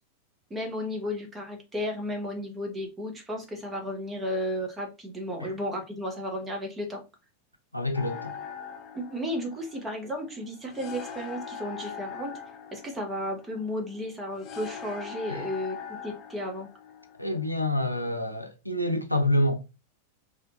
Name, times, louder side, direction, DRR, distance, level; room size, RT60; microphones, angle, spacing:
voice 1, 0.5-7.0 8.9-12.4 12.7-15.8 16.0-16.7, equal, 15° right, 0.9 m, -33 dB
voice 2, 7.7-8.4 15.3-15.5 17.2-19.6, left 1 dB, 90° left, 0.4 m, -27 dB
sound 1, 7.9-17.9, left 7 dB, 35° left, 0.5 m, -42 dB
2.9 x 2.2 x 2.5 m
figure-of-eight pair, 90°, 0 cm